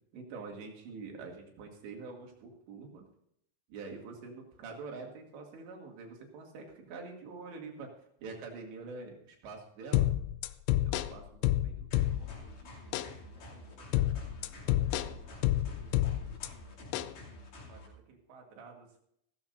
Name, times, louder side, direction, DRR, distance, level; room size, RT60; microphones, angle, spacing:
voice 1, 0.1-3.0 3.7-7.9 8.2-10.1 10.8-12.8 13.0-14.1 14.5-15.3 17.7-19.0, right 4 dB, 80° right, 1 dB, 4.6 m, -47 dB
sound 1, 9.9-12.5 12.9-13.1 13.9-16.5 16.9-17.1, left 14 dB, 80° left, 2.4 m, -29 dB
sound 2, 11.9-17.9, left 1 dB, 50° left, 4.1 m, -49 dB
16.0 x 14.5 x 2.6 m, 0.70 s
omnidirectional pair, 5.0 m